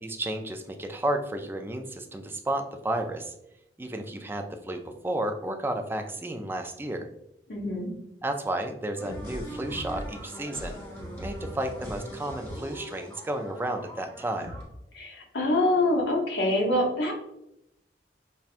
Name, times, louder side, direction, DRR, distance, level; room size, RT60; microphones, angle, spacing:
voice 1, 0.0-3.3 3.8-7.1 8.2-10.8 11.2-14.5, right 1 dB, 15° right, 5 dB, 0.3 m, -32 dB
voice 2, 7.5-7.9 14.9-17.2, left 1 dB, 75° left, -1 dB, 1.0 m, -25 dB
sound 1, 9.0-14.6, equal, 15° left, 1.0 m, -40 dB
5.5 x 2.2 x 2.4 m, 0.81 s
head